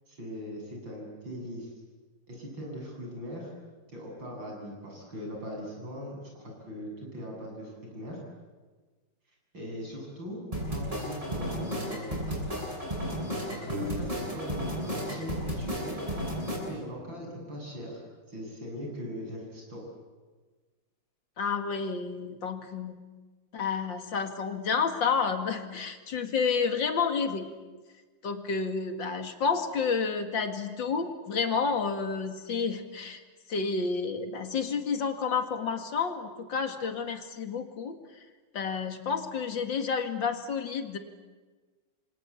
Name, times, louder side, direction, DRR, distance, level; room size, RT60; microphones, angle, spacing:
voice 1, 0.1-1.7 2.3-3.5 3.9-8.2 9.5-12.6 13.6-16.1 16.7-18.0 18.3-19.8, equal, 90° right, -1 dB, 9.0 m, -40 dB
sound 1, 10.5-16.6, equal, 20° right, 8.0 m, -33 dB
voice 2, 21.4-23.0 23.5-27.5 28.2-33.2 33.5-38.0 38.5-41.0, left 5 dB, 75° left, 7 dB, 2.8 m, -30 dB
28.5 x 24.5 x 8.4 m, 1.3 s
omnidirectional pair, 2.0 m